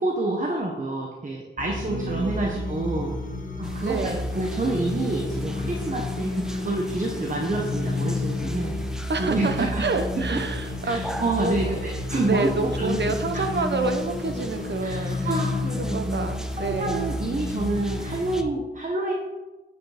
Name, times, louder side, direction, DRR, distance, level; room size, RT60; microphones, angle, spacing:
voice 1, 0.0-3.1 3.6-8.7 9.2-9.8 10.3-10.4 10.8-13.4 14.8-16.2 16.6-19.1, right 2 dB, 45° right, 0 dB, 1.2 m, -28 dB
sound 1, 1.6-18.4, left 2 dB, 50° left, 1.2 m, -31 dB
voice 2, 1.8-2.6 3.8-4.2 9.1-11.1 11.4-11.9 12.3-15.3 15.9-17.0, right 3 dB, 70° right, 7 dB, 1.0 m, -28 dB
sound 2, 3.6-18.4, equal, 5° right, 0.7 m, -42 dB
8.7 x 6.6 x 5.1 m, 1.2 s
wide cardioid pair, 90°, 19 cm